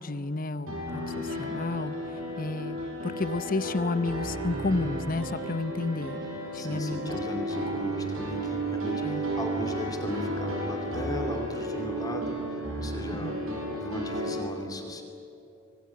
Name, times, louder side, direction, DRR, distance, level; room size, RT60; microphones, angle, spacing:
voice 1, 0.0-2.8 3.0-6.2 6.5-7.1 9.0-9.2 13.1-13.4, left 2 dB, 40° left, 13 dB, 0.8 m, -31 dB
sound 1, 0.7-14.4, right 1 dB, 85° right, 6.3 m, -33 dB
voice 2, 6.5-15.0, left 1 dB, 20° left, 3 dB, 2.4 m, -37 dB
25.0 x 20.0 x 9.6 m, 2.9 s
head